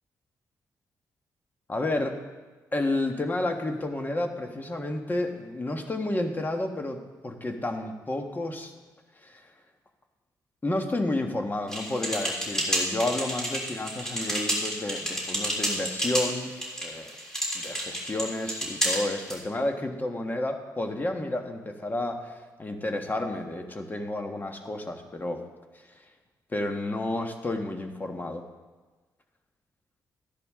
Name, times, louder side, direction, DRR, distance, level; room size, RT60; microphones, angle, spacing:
voice 1, 1.7-2.1 2.7-8.7 9.2-9.4 10.6-16.5 16.8-17.1 17.5-22.3 22.6-25.4 26.5-28.4, left 2 dB, 25° left, 4 dB, 1.5 m, -31 dB
sound 1, 11.7-19.4, equal, 10° left, 3.5 m, -30 dB
13.5 x 10.5 x 3.7 m, 1.3 s
cardioid pair, 80°, 7 cm